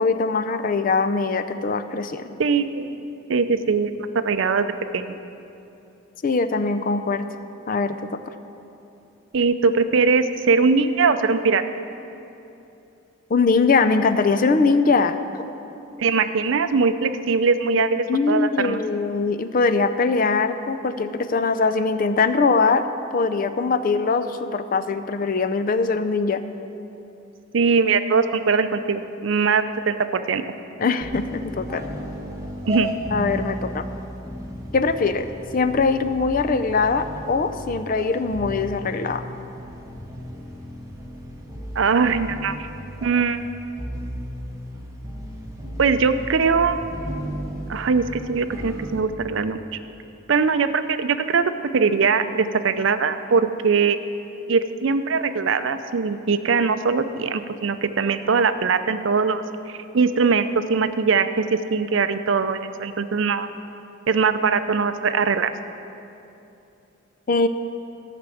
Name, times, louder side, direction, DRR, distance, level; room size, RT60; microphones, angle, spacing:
voice 1, 0.0-2.3 6.2-7.3 7.7-8.2 13.3-15.4 17.7-22.8 23.1-26.4 30.8-31.8 33.1-33.8 34.7-35.3 35.5-39.2 67.3-67.5, left 4 dB, 40° left, 11 dB, 0.4 m, -22 dB
voice 2, 2.4-3.0 3.3-5.2 9.3-11.6 16.0-18.8 27.5-30.4 32.7-32.9 41.8-42.7 43.0-43.4 45.8-46.8 47.7-49.6 50.3-51.4 51.7-54.0 54.5-59.4 59.7-63.5 64.1-65.5, right 5 dB, 60° right, 10 dB, 0.5 m, -21 dB
sound 1, 31.0-49.0, equal, 15° right, 1.2 m, -35 dB
13.5 x 5.9 x 7.7 m, 2.8 s
head